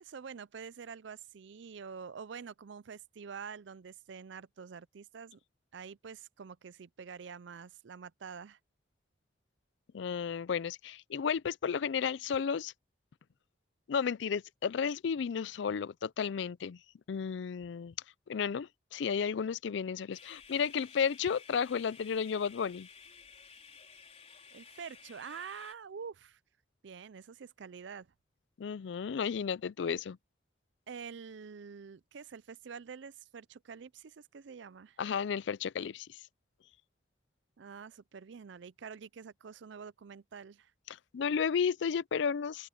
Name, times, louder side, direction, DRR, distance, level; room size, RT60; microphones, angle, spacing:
voice 1, 0.0-5.4 5.7-8.6 24.5-26.4 26.8-28.1 30.9-35.0 37.6-40.7, right 6 dB, 70° right, 0.5 m, -47 dB
voice 2, 9.9-12.7 13.9-16.8 17.1-17.9 18.3-22.9 28.6-30.2 35.0-36.2 40.9-42.7, left 6 dB, 70° left, 0.4 m, -33 dB
sound 1, 20.1-25.7, left 6 dB, 35° left, 4.8 m, -55 dB
open air
head